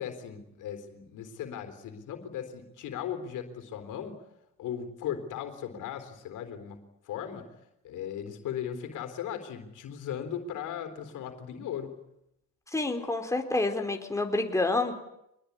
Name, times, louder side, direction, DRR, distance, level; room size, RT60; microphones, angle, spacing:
voice 1, 0.0-4.2 4.6-6.8 7.0-7.5 7.8-11.9, left 9 dB, 85° left, 7 dB, 3.9 m, -37 dB
voice 2, 12.7-14.9, left 2 dB, 10° left, 4 dB, 4.1 m, -28 dB
24.5 x 20.5 x 9.8 m, 0.82 s
cardioid pair, 90°, 30 cm